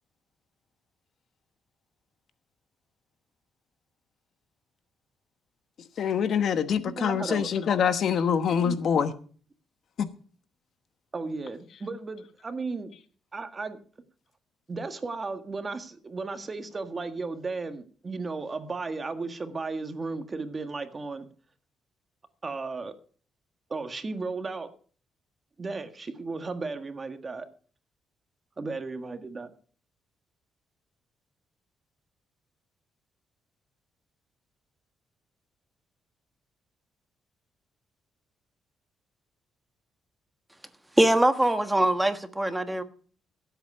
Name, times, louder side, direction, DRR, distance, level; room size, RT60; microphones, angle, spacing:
voice 1, 6.0-9.1 10.0-10.1, left 7 dB, 65° left, 1.1 m, -25 dB
voice 2, 6.8-7.5 8.6-8.8 11.1-12.9 13.3-13.8 14.7-21.3 22.4-22.9 23.7-24.7 25.6-27.5 28.6-29.5, right 3 dB, 30° right, 1.6 m, -35 dB
voice 3, 41.0-42.8, right 1 dB, 10° right, 1.4 m, -22 dB
16.0 x 8.1 x 5.5 m
cardioid pair, 90°, 0 cm